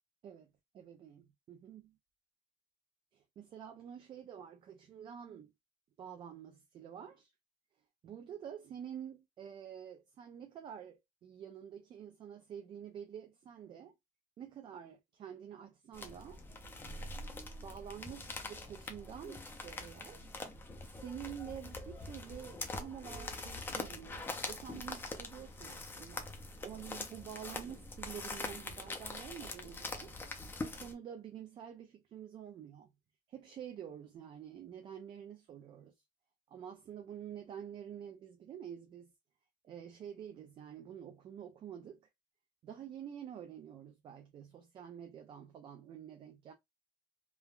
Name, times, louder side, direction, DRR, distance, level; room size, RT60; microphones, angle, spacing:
voice 1, 0.2-2.0 3.1-5.5 6.0-7.3 8.0-13.9 14.4-16.4 17.0-17.2 17.6-20.3 20.8-26.3 26.6-30.2 30.6-32.9 33.3-35.9 36.5-39.1 39.6-42.0 42.6-46.5, right 9 dB, 40° right, 0.4 m, -48 dB
sound 1, 15.9-30.9, left 2 dB, 15° left, 0.5 m, -44 dB
3.2 x 2.1 x 2.3 m
cardioid pair, 150°, 13 cm